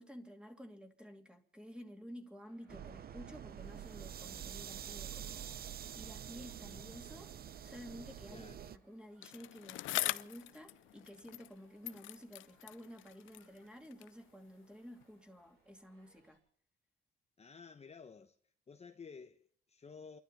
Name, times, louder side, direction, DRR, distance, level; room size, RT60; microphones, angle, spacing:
voice 1, 0.0-5.6 5.9-7.3 7.6-16.4, equal, 5° right, 2.6 m, -52 dB
sound 1, 2.4-16.4, right 3 dB, 90° right, 7.8 m, -73 dB
sound 2, 2.7-8.8, right 9 dB, 50° right, 0.7 m, -47 dB
voice 2, 8.3-8.6 17.4-18.4 18.7-20.2, left 5 dB, 30° left, 1.0 m, -53 dB
Bicycle, 9.2-11.6 11.8-14.2 15.0-15.1, left 16 dB, 85° left, 0.5 m, -42 dB
29.0 x 12.0 x 4.2 m
cardioid pair, 90°, 20 cm